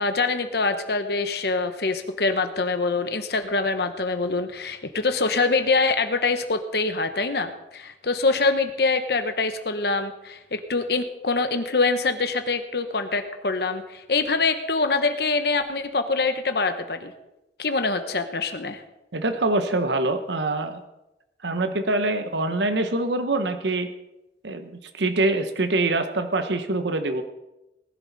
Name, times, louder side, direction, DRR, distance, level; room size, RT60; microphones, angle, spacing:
voice 1, 0.0-17.1 17.6-18.8, left 3 dB, 65° left, 8 dB, 1.0 m, -24 dB
voice 2, 19.1-20.8 21.4-23.9 24.4-27.2, right 2 dB, 80° right, 8 dB, 1.0 m, -24 dB
19.0 x 11.5 x 4.1 m, 0.96 s
head